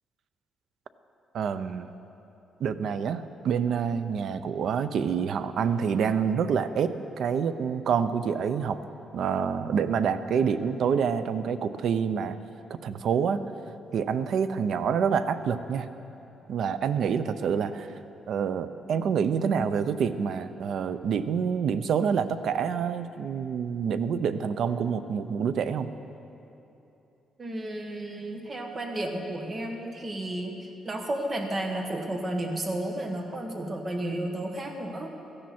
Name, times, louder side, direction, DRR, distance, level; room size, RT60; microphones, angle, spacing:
voice 1, 1.3-1.9 2.6-8.8 9.1-12.4 12.7-13.4 13.9-15.9 16.5-17.9 18.3-25.9, right 7 dB, 60° right, 12 dB, 0.6 m, -27 dB
voice 2, 27.4-35.1, right 1 dB, 30° right, 3 dB, 1.5 m, -32 dB
16.5 x 14.0 x 4.4 m, 3.0 s
cardioid pair, 135°, 0 cm